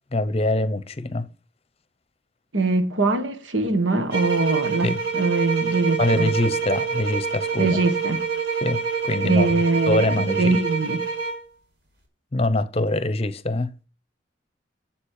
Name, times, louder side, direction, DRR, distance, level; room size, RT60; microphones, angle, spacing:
voice 1, 0.1-1.3 4.8-5.0 6.0-7.8 8.6-9.5 9.9-10.6 12.3-13.8, left 2 dB, 30° left, 0.8 m, -24 dB
voice 2, 2.5-6.3 7.6-8.2 9.2-11.0, right 3 dB, 90° right, 1.6 m, -22 dB
sound 1, 4.1-11.5, right 6 dB, 65° right, 4.4 m, -26 dB
7.5 x 7.5 x 6.6 m
head